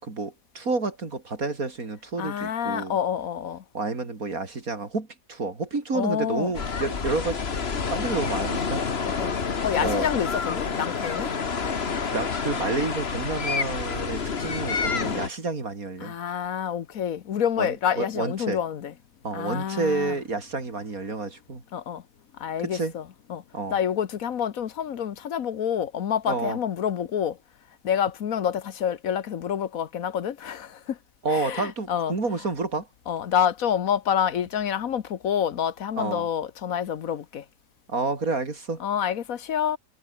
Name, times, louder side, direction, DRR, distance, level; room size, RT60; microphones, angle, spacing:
voice 1, 0.0-3.0 3.7-7.5 7.9-8.8 9.8-10.1 12.1-16.2 17.6-18.6 19.2-21.6 22.6-22.9 23.5-23.8 26.3-26.6 31.2-32.9 36.0-36.3 37.9-38.8, right 3 dB, 75° right, 4.1 m, -29 dB
voice 2, 2.2-3.6 5.9-6.5 9.1-9.3 9.6-11.3 15.0-15.3 16.0-18.9 19.3-20.1 21.7-22.0 22.4-23.0 23.3-23.4 23.7-27.4 27.8-31.0 31.3-32.1 33.1-37.4 38.8-39.8, left 8 dB, 75° left, 1.4 m, -28 dB
sound 1, 6.5-15.3, left 5 dB, 45° left, 1.7 m, -28 dB
omnidirectional pair, 1.5 m